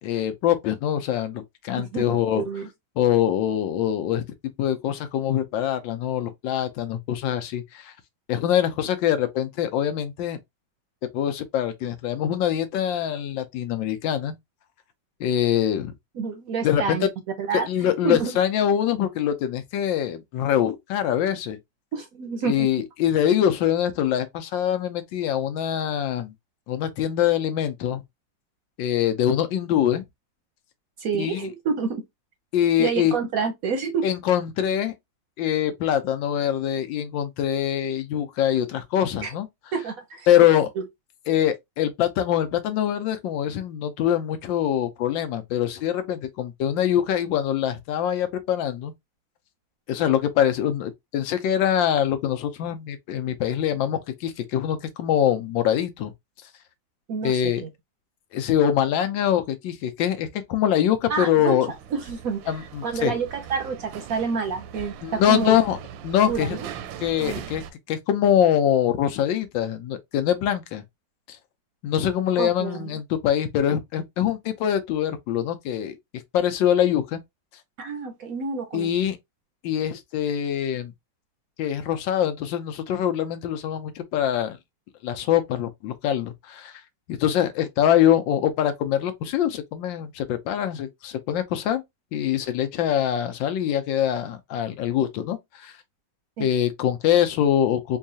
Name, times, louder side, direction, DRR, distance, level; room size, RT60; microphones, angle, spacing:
voice 1, 0.0-2.4 3.0-7.9 8.3-10.4 11.1-14.4 15.2-15.9 16.6-17.0 17.7-21.6 22.4-26.3 26.7-28.0 28.8-30.0 31.1-31.5 32.5-33.1 34.0-34.9 35.4-39.5 40.3-40.7 41.3-48.9 49.9-56.1 57.2-57.6 58.3-61.7 62.5-63.1 65.0-65.8 66.0-66.6 67.0-67.6 67.9-70.8 71.3-71.4 71.8-76.0 76.3-77.2 78.7-79.2 79.6-80.9 81.6-84.6 85.0-86.7 87.1-91.8 92.1-95.7 96.4-98.0, left 10 dB, 85° left, 1.4 m, -24 dB
voice 2, 1.8-2.7 16.1-17.1 17.4-18.3 21.9-22.7 31.0-32.0 32.8-34.0 39.2-39.3 39.7-40.3 40.8-40.9 57.1-57.7 61.1-62.4 62.8-65.6 66.3-66.7 67.2-67.4 72.4-72.9 77.8-78.9 96.4-96.5, right 5 dB, 65° right, 0.9 m, -28 dB
sound 1, 61.7-67.7, right 8 dB, 85° right, 1.3 m, -40 dB
4.5 x 2.4 x 2.6 m
omnidirectional pair, 2.0 m